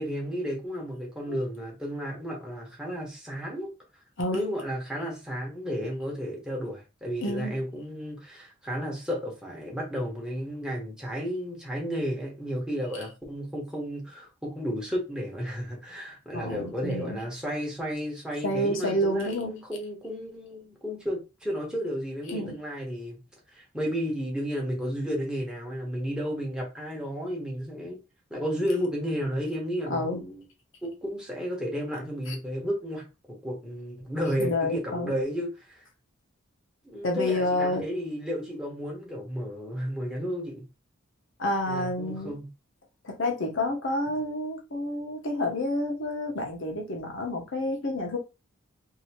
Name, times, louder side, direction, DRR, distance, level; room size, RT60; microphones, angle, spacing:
voice 1, 0.0-3.7 4.3-23.2 23.5-28.0 28.3-30.4 30.8-33.0 33.3-35.8 36.8-40.6 41.7-42.5, equal, 5° right, 1.0 m, -32 dB
voice 2, 7.2-7.6 16.3-17.2 18.4-19.5 22.3-22.6 29.9-30.3 32.3-32.4 34.4-35.1 37.0-37.8 41.4-42.4 43.0-48.2, left 1 dB, 65° left, 0.9 m, -29 dB
2.8 x 2.7 x 2.8 m
head